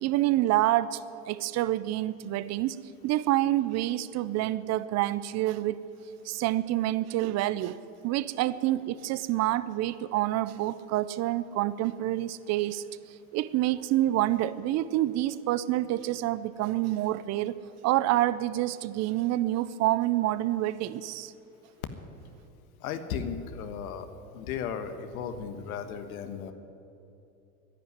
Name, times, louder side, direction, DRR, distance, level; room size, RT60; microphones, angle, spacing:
voice 1, 0.0-1.0 1.3-2.8 3.0-5.8 6.2-7.8 8.0-12.8 13.3-17.6 17.8-21.3, right 15 dB, 40° right, 17 dB, 0.6 m, -27 dB
voice 2, 22.8-24.1 24.3-26.5, left 7 dB, 75° left, 9 dB, 1.4 m, -35 dB
11.0 x 10.5 x 9.5 m, 2.8 s
hypercardioid pair, 105°, 43 cm